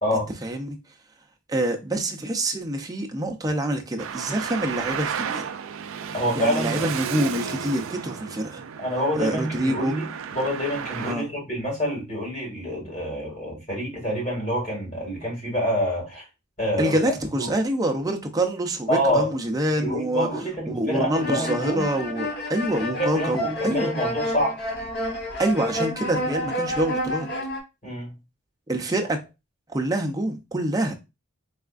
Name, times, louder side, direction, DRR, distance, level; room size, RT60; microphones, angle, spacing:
voice 1, 0.1-0.8 1.5-5.5 6.3-8.6 9.2-9.9 11.0-11.3 16.8-20.3 20.7-23.9 25.4-27.3 28.7-29.2 29.7-30.9, right 1 dB, 15° right, 0.5 m, -26 dB
Traffic noise roadway noise, 4.0-11.1, right 7 dB, 70° right, 0.4 m, -33 dB
voice 2, 6.1-6.8 8.8-10.1 10.3-16.2 16.6-17.5 18.9-19.3 19.8-21.9 23.0-24.6 27.8-28.1, equal, 35° left, 2.2 m, -27 dB
sound 1, 21.1-27.6, left 1 dB, 50° left, 1.0 m, -29 dB
4.2 x 3.5 x 2.4 m
head